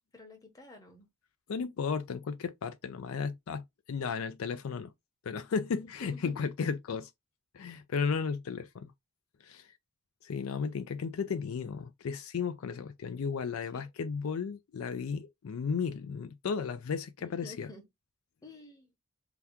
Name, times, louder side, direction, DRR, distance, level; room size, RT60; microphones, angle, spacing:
voice 1, 0.1-1.1 5.8-6.4 13.7-13.8 17.4-17.8 18.4-18.9, left 2 dB, 15° left, 0.9 m, -50 dB
voice 2, 1.5-4.9 5.2-7.1 7.5-8.9 9.4-9.7 10.2-17.7, left 5 dB, 75° left, 0.4 m, -34 dB
2.8 x 2.3 x 3.4 m
head